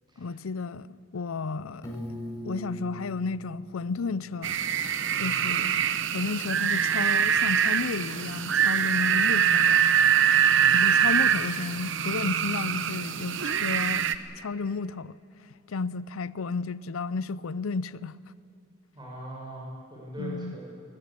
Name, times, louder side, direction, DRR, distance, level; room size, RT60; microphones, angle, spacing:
voice 1, 0.2-2.0 2.4-4.6 5.2-5.7 6.1-9.9 10.7-14.1 14.4-15.2 15.7-18.2 20.2-20.6, left 4 dB, 85° left, 0.6 m, -32 dB
Piano, 1.8-4.8, equal, 15° left, 6.2 m, -41 dB
sound 1, 4.4-14.2, right 8 dB, 65° right, 1.0 m, -24 dB
voice 2, 5.1-5.4 10.5-10.9 18.9-20.6, equal, 20° right, 5.6 m, -41 dB
21.0 x 21.0 x 8.5 m
head